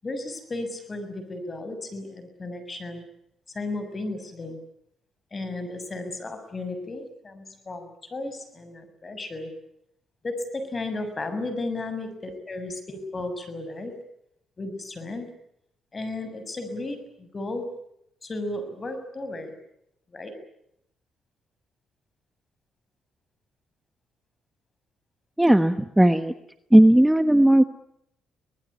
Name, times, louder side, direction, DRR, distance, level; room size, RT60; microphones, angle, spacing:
voice 1, 0.0-3.0 3.5-4.6 5.3-9.5 10.2-14.0 14.6-15.3 15.9-17.7 18.2-19.5 20.1-20.3, left 2 dB, 30° left, 10 dB, 6.8 m, -34 dB
voice 2, 25.4-26.3 26.7-27.6, right 1 dB, 5° right, 9 dB, 1.2 m, -16 dB
24.5 x 19.5 x 10.0 m, 0.76 s
cardioid pair, 90°, 0 cm